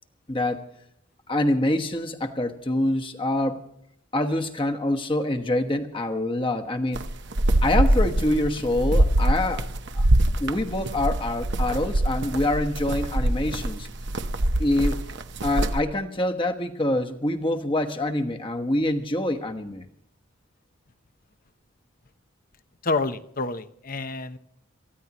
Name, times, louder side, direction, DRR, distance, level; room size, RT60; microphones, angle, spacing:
voice 1, 0.3-0.6 1.3-3.6 4.1-7.0 7.6-9.7 10.0-10.1 10.4-13.9 14.6-15.0 15.4-19.9, left 1 dB, 25° left, 5 dB, 1.2 m, -25 dB
sound 1, 6.9-15.8, right 1 dB, 55° right, 0.9 m, -23 dB
voice 2, 22.8-24.4, left 3 dB, 45° left, 11 dB, 0.8 m, -28 dB
28.5 x 15.0 x 3.0 m, 0.74 s
head